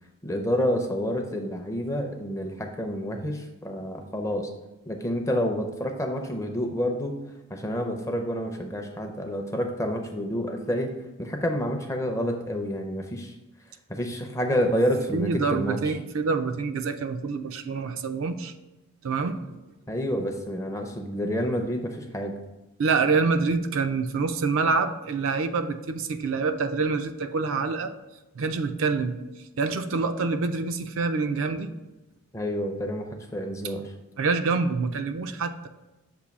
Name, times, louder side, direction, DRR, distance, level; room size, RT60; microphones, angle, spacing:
voice 1, 0.2-4.5 4.9-7.1 7.5-10.9 11.2-13.3 13.9-15.8 19.9-22.4 32.3-33.9, equal, 15° left, 3 dB, 0.5 m, -28 dB
voice 2, 15.1-18.5 19.0-19.6 22.8-27.9 28.3-31.7 34.2-35.7, right 4 dB, 65° right, 8 dB, 0.4 m, -26 dB
6.9 x 2.6 x 5.2 m, 1.0 s
head